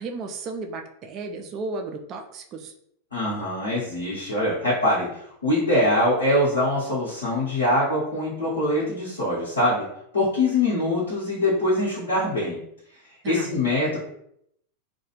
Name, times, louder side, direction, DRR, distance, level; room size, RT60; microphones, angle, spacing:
voice 1, 0.0-2.7 13.2-13.5, right 3 dB, 35° right, 5 dB, 0.4 m, -34 dB
voice 2, 3.1-5.1 5.4-9.8 10.1-12.6 13.3-14.0, left 1 dB, 70° left, -10 dB, 1.0 m, -23 dB
2.3 x 2.2 x 3.0 m, 0.72 s
figure-of-eight pair, 90°, 0 cm